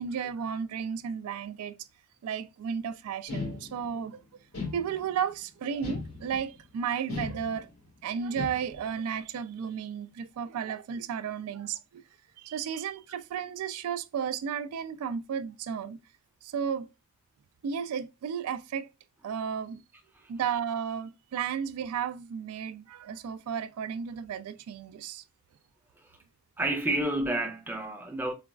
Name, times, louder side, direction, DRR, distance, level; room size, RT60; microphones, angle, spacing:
voice 1, 0.0-1.8 2.2-4.2 4.7-7.7 8.0-12.0 12.4-16.0 16.4-16.9 17.6-18.9 19.2-19.8 20.3-25.2, right 7 dB, 80° right, 0.3 m, -33 dB
sound 1, 3.3-4.1 4.5-5.3 5.8-6.6 7.1-7.9 8.4-9.0, left 3 dB, 75° left, 1.7 m, -37 dB
voice 2, 26.6-28.3, right 1 dB, 10° right, 0.4 m, -29 dB
4.0 x 2.3 x 2.2 m
head